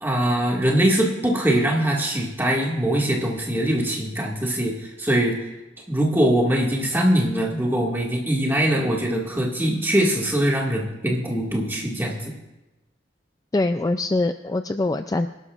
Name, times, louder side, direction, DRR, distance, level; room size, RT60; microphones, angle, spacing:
voice 1, 0.0-5.4 5.9-12.3, right 1 dB, 10° right, -1 dB, 1.9 m, -22 dB
voice 2, 13.5-15.3, left 2 dB, 20° left, 8 dB, 0.3 m, -23 dB
25.5 x 12.0 x 2.5 m, 1.1 s
head